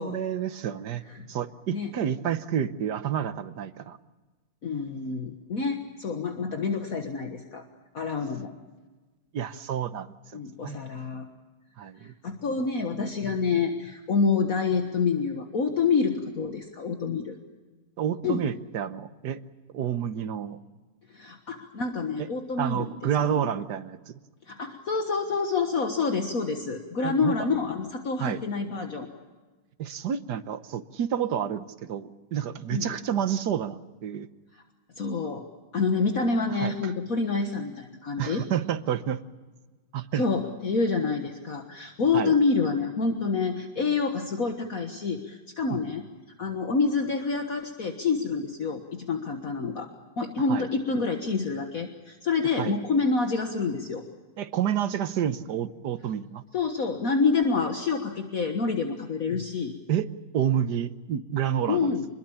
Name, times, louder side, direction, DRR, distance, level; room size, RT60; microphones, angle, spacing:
voice 1, 0.0-1.0 1.3-4.0 9.3-10.8 11.8-12.1 18.0-19.4 19.7-20.6 22.2-22.3 22.6-24.2 27.0-27.4 28.2-28.4 29.8-34.3 36.6-36.7 38.2-39.2 39.9-40.2 42.1-42.3 45.7-45.8 50.5-50.7 52.6-52.8 54.4-56.4 59.9-62.0, right 9 dB, 65° right, 11 dB, 1.6 m, -29 dB
voice 2, 4.6-7.6 7.9-8.5 10.3-11.3 12.0-17.4 18.2-18.4 21.1-22.9 23.2-23.5 24.5-29.1 32.7-32.9 34.5-34.6 35.0-35.5 35.7-38.4 40.1-46.1 46.4-49.9 50.2-54.0 56.5-59.7 61.7-62.0, left 4 dB, 50° left, 4 dB, 1.8 m, -27 dB
26.5 x 21.5 x 7.1 m, 1.3 s
omnidirectional pair, 2.0 m